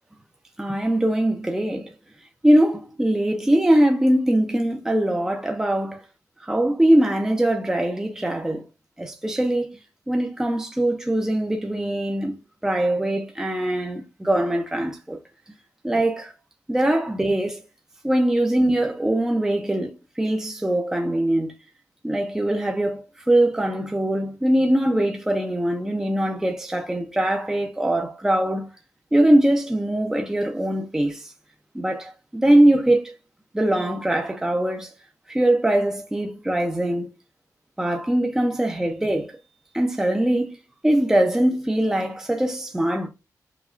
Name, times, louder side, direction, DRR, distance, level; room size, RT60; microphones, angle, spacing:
voice 1, 0.6-1.9 2.4-6.0 6.4-8.7 9.0-9.8 10.1-12.4 12.6-15.2 15.8-16.3 16.7-17.6 18.0-21.5 22.0-28.7 29.1-31.3 31.7-33.1 33.5-34.9 35.3-37.1 37.8-39.3 39.7-40.6 40.8-43.1, right 1 dB, 10° right, 0.6 m, -22 dB
4.9 x 2.3 x 2.4 m
wide cardioid pair, 110°, 6 cm